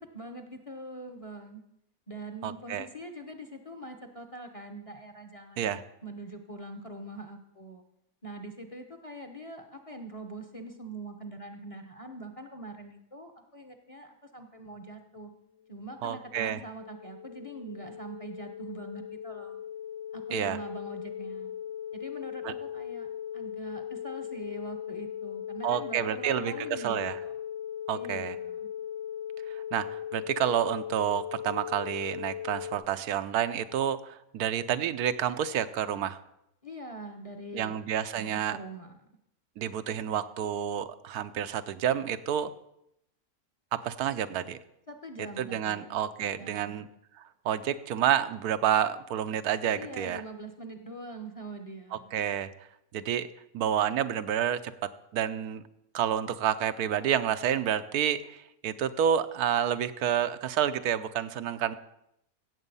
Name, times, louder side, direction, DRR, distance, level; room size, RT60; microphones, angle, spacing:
voice 1, 0.1-1.6 2.1-7.8 8.2-15.3 15.7-19.6 20.1-21.5 21.9-27.4 27.9-28.7 36.6-37.8 38.1-39.1 44.9-46.1 46.4-46.8 49.7-52.1, right 1 dB, 25° left, 6 dB, 0.9 m, -43 dB
voice 2, 2.4-2.9 5.6-5.8 16.0-16.6 20.3-20.6 22.4-22.5 25.6-27.2 27.9-28.3 29.7-36.2 37.5-38.6 39.6-42.5 43.8-44.6 45.4-46.8 47.4-50.2 51.9-52.5 52.9-53.3 53.5-55.6 55.9-61.7, right 9 dB, 80° right, 11 dB, 1.2 m, -29 dB
sound 1, 15.7-32.7, left 9 dB, 60° left, 1.0 m, -39 dB
16.0 x 7.5 x 5.4 m, 0.80 s
omnidirectional pair, 1.6 m